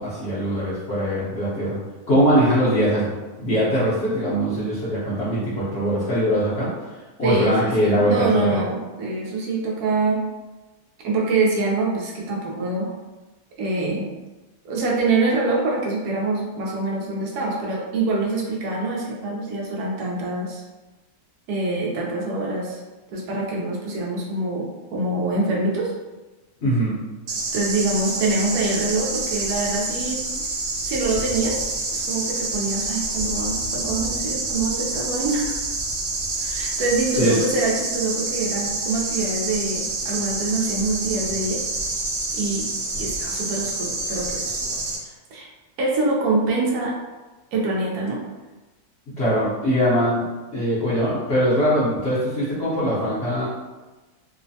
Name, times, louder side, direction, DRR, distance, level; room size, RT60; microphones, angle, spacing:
voice 1, 0.0-1.8 2.1-3.1 3.4-6.7 7.2-8.6 26.6-27.0 37.2-37.3 49.2-50.2 50.5-53.5, equal, 55° left, -10 dB, 0.9 m, -21 dB
voice 2, 7.2-10.2 11.0-12.9 13.6-14.1 14.6-20.6 21.5-22.8 23.1-25.9 27.5-30.2 30.8-31.7 31.9-35.6 36.4-41.6 41.9-42.0 42.3-42.7 42.9-44.6 45.0-45.5 45.8-46.9 47.5-48.2, right 3 dB, 80° right, -3 dB, 1.1 m, -25 dB
sound 1, 27.3-45.0, right 2 dB, 65° right, 0.7 m, -27 dB
3.0 x 2.1 x 2.6 m, 1.2 s
omnidirectional pair, 1.6 m